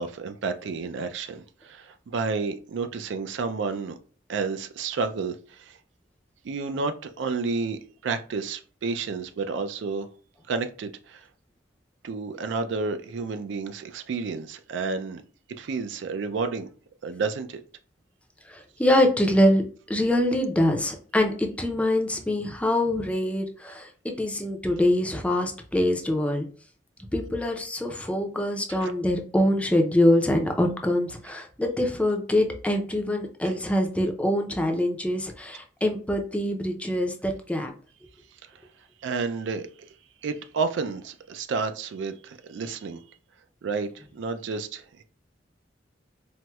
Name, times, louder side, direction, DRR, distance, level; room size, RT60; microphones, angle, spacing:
voice 1, 0.0-4.0 4.3-5.8 6.4-10.1 10.5-11.3 12.0-15.2 15.6-16.7 17.0-17.6 28.7-28.9 33.4-33.5 38.4-38.7 39.0-39.9 40.2-43.0 43.6-45.0, right 4 dB, 75° right, 0.4 m, -31 dB
voice 2, 18.5-19.6 19.9-26.5 27.1-37.7, left 1 dB, 5° left, 0.4 m, -24 dB
4.3 x 2.0 x 2.2 m
head